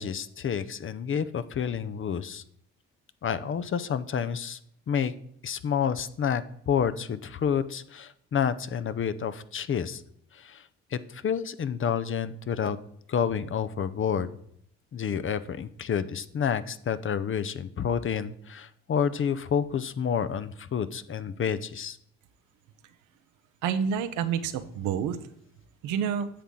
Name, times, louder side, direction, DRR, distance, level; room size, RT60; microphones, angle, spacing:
voice 1, 0.0-2.4 3.2-4.6 4.9-5.1 5.4-10.0 10.3-12.8 13.1-14.3 14.9-22.0, left 7 dB, 45° left, 13 dB, 0.7 m, -29 dB
voice 2, 23.6-25.2 25.8-26.3, right 7 dB, 85° right, 10 dB, 0.9 m, -28 dB
10.0 x 7.1 x 3.8 m, 0.71 s
supercardioid pair, 65°, 30 cm